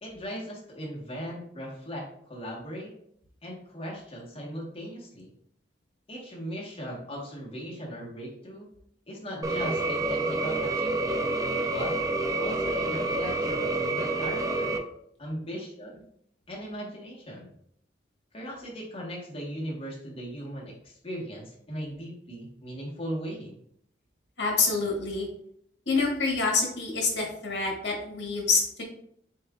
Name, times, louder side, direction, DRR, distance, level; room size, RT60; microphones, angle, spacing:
voice 1, 0.0-2.9 3.4-5.3 6.1-8.7 9.1-11.2 11.6-12.0 12.4-14.8 15.2-16.0 16.5-17.5 18.3-23.6, equal, 30° left, -3 dB, 1.3 m, -38 dB
sound 1, 9.4-14.8, right 2 dB, 20° right, 0.4 m, -28 dB
voice 2, 24.4-25.3 25.9-28.8, left 4 dB, 70° left, -2 dB, 1.5 m, -27 dB
7.1 x 2.6 x 2.4 m, 0.69 s
head